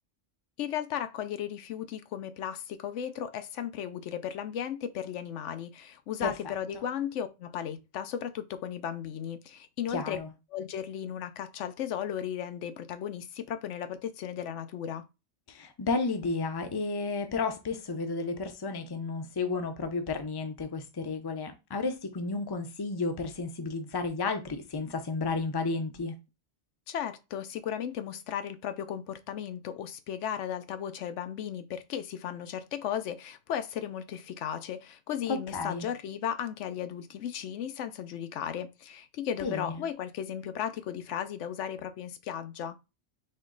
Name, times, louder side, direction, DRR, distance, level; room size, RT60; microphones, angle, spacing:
voice 1, 0.6-10.2 10.5-15.0 26.9-42.8, left 9 dB, 80° left, 0.9 m, -35 dB
voice 2, 9.9-10.3 15.5-26.1 35.3-35.9 39.4-39.8, left 3 dB, 25° left, 0.5 m, -32 dB
4.3 x 3.0 x 3.8 m
omnidirectional pair, 1.2 m